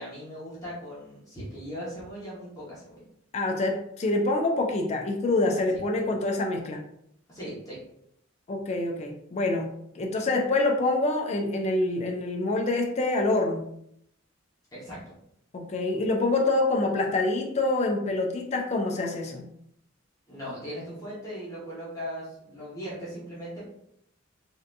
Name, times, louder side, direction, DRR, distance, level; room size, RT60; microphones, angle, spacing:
voice 1, 0.0-3.0 7.3-7.8 14.7-15.1 20.3-23.6, equal, 15° left, -9 dB, 1.0 m, -38 dB
voice 2, 3.3-6.8 8.5-13.7 15.5-19.4, left 2 dB, 35° left, 2 dB, 0.4 m, -26 dB
3.3 x 2.7 x 2.6 m, 0.73 s
head